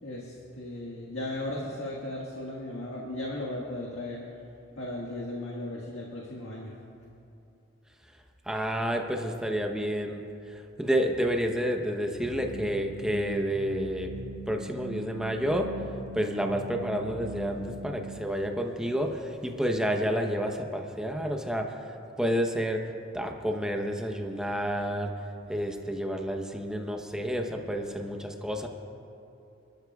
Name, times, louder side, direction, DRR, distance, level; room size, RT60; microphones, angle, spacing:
voice 1, 0.0-4.2 4.8-6.7, left 1 dB, 70° left, -3 dB, 1.7 m, -36 dB
voice 2, 8.5-10.2 10.5-14.1 14.5-15.7 16.1-21.7 22.2-22.8 23.1-25.1 25.5-28.7, equal, 5° right, 2 dB, 0.9 m, -29 dB
sound 1, 12.2-18.2, right 2 dB, 80° right, 1.7 m, -40 dB
27.5 x 13.0 x 2.4 m, 2.7 s
head